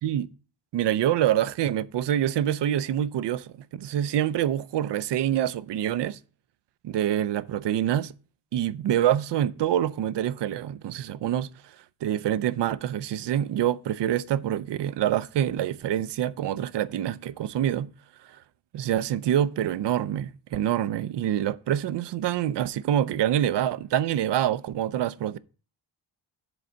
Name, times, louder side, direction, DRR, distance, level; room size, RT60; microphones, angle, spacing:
voice 1, 0.7-6.2 6.8-8.1 8.5-11.5 12.0-17.9 18.7-25.4, right 11 dB, 60° right, 0.5 m, -26 dB
7.9 x 4.0 x 6.2 m
cardioid pair, 80°, 48 cm